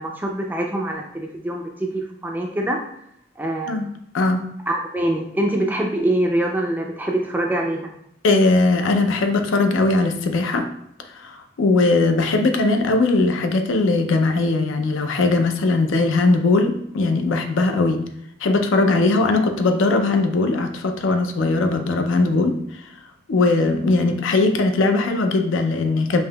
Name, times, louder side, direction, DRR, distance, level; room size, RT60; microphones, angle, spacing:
voice 1, 0.0-2.8 3.4-3.8 4.7-7.9, right 1 dB, 10° right, 1 dB, 0.3 m, -24 dB
voice 2, 4.1-4.5 8.2-10.7 11.1-18.0 18.4-22.6 23.3-26.2, left 3 dB, 70° left, 5 dB, 0.4 m, -19 dB
5.4 x 2.7 x 2.2 m, 0.73 s
head